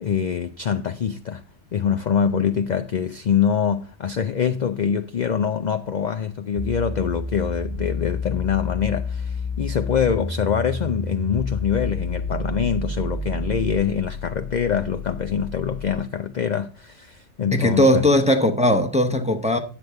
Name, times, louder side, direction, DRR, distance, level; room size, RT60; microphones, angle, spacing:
voice 1, 0.0-1.4 1.7-18.0, left 7 dB, 55° left, 0.5 m, -24 dB
sound 1, 6.6-16.2, left 3 dB, 20° left, 1.5 m, -30 dB
voice 2, 17.5-19.6, left 1 dB, 5° right, 0.7 m, -18 dB
9.8 x 7.8 x 3.5 m
omnidirectional pair, 1.2 m